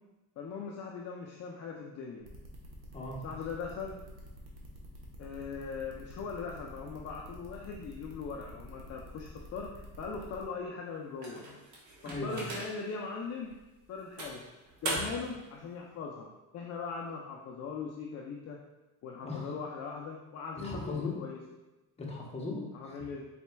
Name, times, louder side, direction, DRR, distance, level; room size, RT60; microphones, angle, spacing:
voice 1, 0.4-2.3 3.2-4.0 5.2-11.4 12.0-13.5 13.9-14.4 14.8-16.3 16.5-18.6 19.0-21.4 22.7-23.2, left 5 dB, 45° left, -1 dB, 0.5 m, -40 dB
sound 1, 2.2-10.4, right 1 dB, 65° right, 1.1 m, -50 dB
voice 2, 2.9-3.2 12.0-12.5 19.2-19.5 20.6-21.2 22.0-22.9, left 3 dB, 15° left, -3 dB, 1.0 m, -38 dB
Door Open Close Interior, 11.2-12.9 13.5-13.6 14.2-15.4, right 2 dB, 50° right, 1.2 m, -39 dB
4.2 x 4.2 x 2.2 m, 1.0 s
cardioid pair, 110°, 38 cm